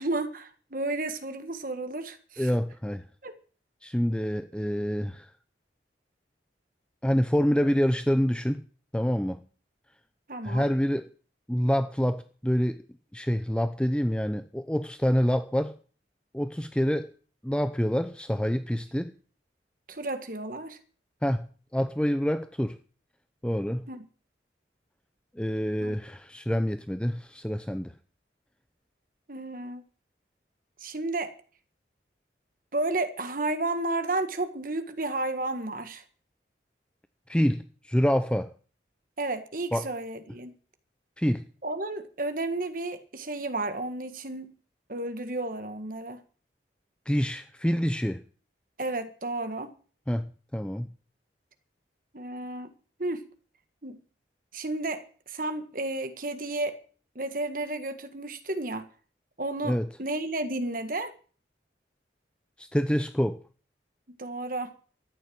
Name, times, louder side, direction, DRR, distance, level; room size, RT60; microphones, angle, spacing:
voice 1, 0.0-2.5 3.2-3.4 10.3-10.7 19.9-20.8 23.9-24.0 25.8-25.9 29.3-29.8 30.8-31.3 32.7-36.0 39.2-40.5 41.6-44.5 44.9-46.2 48.8-49.7 52.1-52.7 53.0-53.2 53.8-54.0 54.5-56.8 57.1-58.9 59.4-61.1 64.2-64.7, right 2 dB, 50° right, 9 dB, 1.7 m, -32 dB
voice 2, 2.4-3.0 3.8-5.3 7.0-8.6 8.9-9.4 10.4-11.1 11.5-12.8 13.1-15.7 16.3-17.1 17.4-19.1 21.2-21.5 21.7-22.8 23.4-23.8 25.4-27.9 37.3-38.5 39.7-39.9 41.2-41.4 47.1-48.2 50.1-50.9 59.6-59.9 62.6-63.4, equal, 5° left, 10 dB, 0.6 m, -27 dB
13.5 x 9.0 x 8.6 m, 0.41 s
head